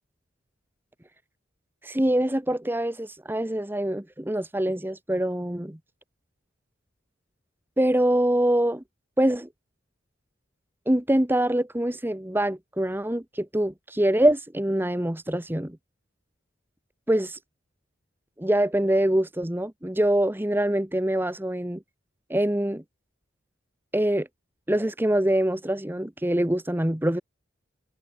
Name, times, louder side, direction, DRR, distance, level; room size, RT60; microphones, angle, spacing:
voice 1, 1.8-5.8 7.8-8.8 9.2-9.5 10.9-15.8 17.1-17.4 18.4-21.8 22.3-22.8 23.9-24.3 24.7-27.2, right 1 dB, 10° right, 1.1 m, -24 dB
head